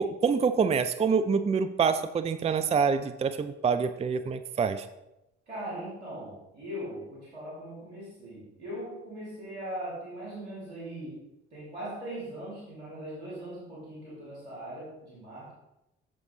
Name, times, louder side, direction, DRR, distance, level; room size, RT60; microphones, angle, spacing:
voice 1, 0.0-4.9, right 5 dB, 20° right, 10 dB, 0.5 m, -26 dB
voice 2, 5.5-11.2 11.5-15.5, right 1 dB, 85° right, -7 dB, 3.0 m, -40 dB
6.7 x 6.4 x 3.9 m, 0.91 s
figure-of-eight pair, 45°, 33 cm